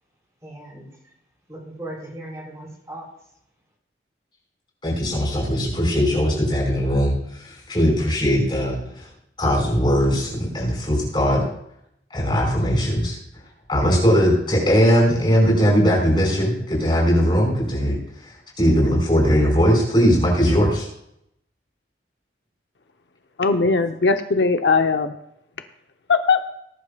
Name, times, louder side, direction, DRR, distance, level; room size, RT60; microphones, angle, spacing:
voice 1, 0.4-0.9 1.5-3.1, right 1 dB, 20° right, -3 dB, 4.7 m, -37 dB
voice 2, 4.8-9.1 9.4-11.4 12.1-13.2 13.7-20.9, equal, 25° left, -2 dB, 4.9 m, -19 dB
voice 3, 23.4-25.2 26.1-26.4, left 4 dB, 80° left, 7 dB, 0.8 m, -19 dB
19.5 x 11.0 x 2.3 m, 0.75 s
head